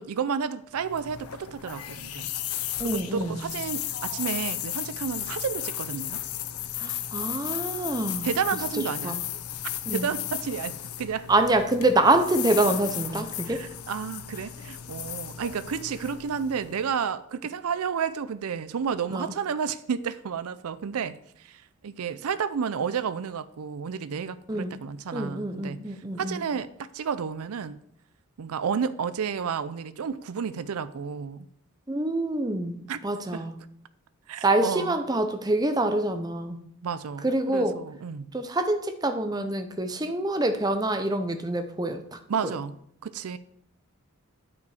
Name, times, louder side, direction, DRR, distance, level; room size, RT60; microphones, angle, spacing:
voice 1, 0.0-2.3 2.8-6.2 8.2-9.2 9.9-11.3 13.5-25.8 26.2-27.8 28.4-31.5 32.9-33.0 33.3-33.4 34.3-35.0 36.8-38.3 42.3-42.8 43.0-43.4, right 6 dB, 80° right, 14 dB, 0.4 m, -31 dB
sound 1, 0.8-16.9, left 11 dB, 85° left, 0.6 m, -35 dB
voice 2, 2.8-3.4 6.8-8.3 9.0-9.2 9.9-10.0 11.3-13.6 19.1-19.3 24.5-24.8 25.1-26.4 31.9-33.5 34.4-36.6 37.2-37.8 38.3-42.0, right 2 dB, 20° right, 7 dB, 0.6 m, -26 dB
9.4 x 5.3 x 4.8 m, 0.69 s
head